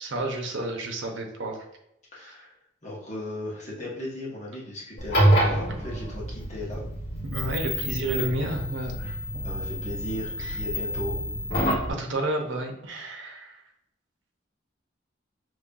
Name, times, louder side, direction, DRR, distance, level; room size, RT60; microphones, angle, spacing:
voice 1, 0.0-1.6 2.2-2.3 7.2-9.4 10.4-10.6 11.9-13.6, right 1 dB, 85° right, 3 dB, 0.8 m, -31 dB
voice 2, 2.1-2.5 2.8-6.8 9.0-9.1 9.4-11.2, left 1 dB, 35° left, -5 dB, 1.4 m, -36 dB
sound 1, 5.0-11.9, equal, 60° left, 1.6 m, -27 dB
5.6 x 3.1 x 2.5 m, 0.80 s
head